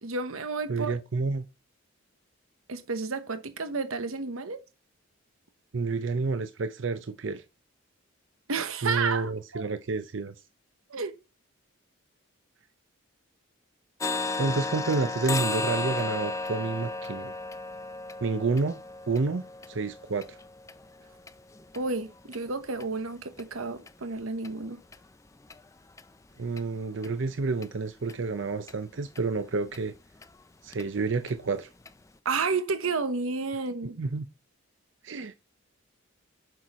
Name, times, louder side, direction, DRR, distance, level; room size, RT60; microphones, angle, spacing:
voice 1, 0.0-1.0 2.7-4.6 8.5-9.6 10.9-11.1 21.7-24.8 32.2-34.0, right 4 dB, 85° right, 1.0 m, -31 dB
voice 2, 0.7-1.5 5.7-7.4 8.8-10.3 14.4-17.3 18.2-18.8 19.1-20.4 26.4-29.9 30.6-31.7 34.0-34.3 35.0-35.3, right 4 dB, 60° right, 0.6 m, -29 dB
sound 1, 14.0-21.8 22.3-22.4 22.8-22.9 23.4-23.5 23.9-24.0 24.4-24.5 24.9-25.0 25.5-25.6 26.0-26.1 26.6-26.7 27.0-27.1 27.6-27.7 28.1-28.2 28.7-28.8 29.2-29.3 29.7-29.8 30.2-30.3 30.7-30.8 31.3-31.4 31.9-32.0, left 3 dB, 15° left, 0.4 m, -34 dB
6.4 x 6.3 x 4.2 m
head